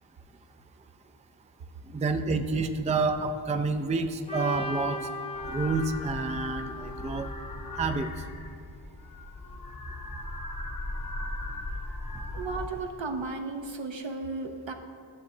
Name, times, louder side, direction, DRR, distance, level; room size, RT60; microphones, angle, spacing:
voice 1, 1.9-5.1 5.5-7.3 7.8-8.1, right 3 dB, 15° right, 7 dB, 0.4 m, -28 dB
Trumpet, 4.3-8.4, left 1 dB, 10° left, 0.9 m, -39 dB
sound 1, 5.3-12.7, left 2 dB, 45° left, 0.8 m, -38 dB
voice 2, 12.3-14.7, right 3 dB, 70° right, 4 dB, 0.8 m, -34 dB
13.0 x 6.4 x 2.7 m, 2.3 s
wide cardioid pair, 50°, 47 cm